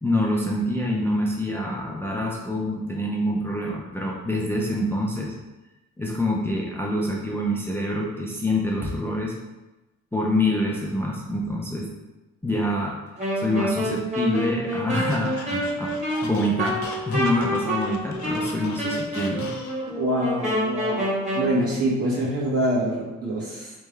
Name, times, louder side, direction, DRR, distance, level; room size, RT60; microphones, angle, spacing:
voice 1, 0.0-5.3 6.0-9.3 10.1-11.9 12.4-13.0 13.4-15.9 16.2-19.5, left 1 dB, 10° left, -2 dB, 0.5 m, -26 dB
Wind instrument woodwind instrument, 13.2-21.5, equal, 20° right, 1.5 m, -28 dB
Squeak, 14.9-20.0, left 5 dB, 70° left, 0.7 m, -40 dB
voice 2, 20.0-23.7, right 1 dB, 50° right, -5 dB, 1.5 m, -25 dB
3.4 x 3.1 x 3.2 m, 1.0 s
cardioid pair, 90°, 30 cm